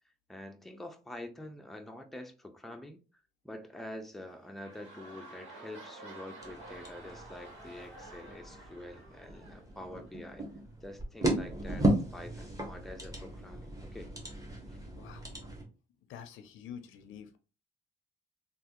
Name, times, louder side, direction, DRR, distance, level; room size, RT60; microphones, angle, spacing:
voice 1, 0.3-3.0 3.4-10.4 10.8-14.1 14.7-14.8, left 1 dB, ahead, 0.5 m, -46 dB
sound 1, 4.1-10.5 11.2-11.3, right 2 dB, 85° right, 1.4 m, -51 dB
sound 2, 6.4-15.6, right 1 dB, 15° right, 1.3 m, -36 dB
voice 2, 15.0-15.4 16.1-17.4, left 8 dB, 85° left, 0.5 m, -47 dB
3.3 x 2.4 x 2.8 m
cardioid pair, 90°, 20 cm